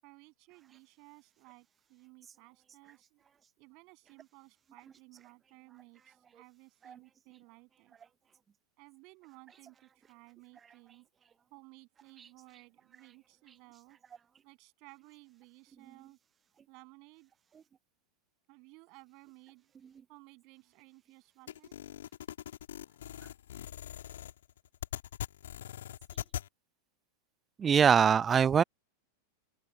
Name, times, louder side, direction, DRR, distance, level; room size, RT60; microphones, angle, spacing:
voice 1, 0.0-3.2 3.6-8.0 8.8-11.1 11.5-14.0 14.4-16.2 16.7-17.3 18.5-19.7 20.1-21.8, right 28 dB, 45° right, 7.6 m, -57 dB
sound 1, 21.5-26.5, left 11 dB, 60° left, 2.5 m, -42 dB
voice 2, 27.6-28.6, right 7 dB, 20° right, 0.6 m, -23 dB
open air
figure-of-eight pair, 90°, 0 cm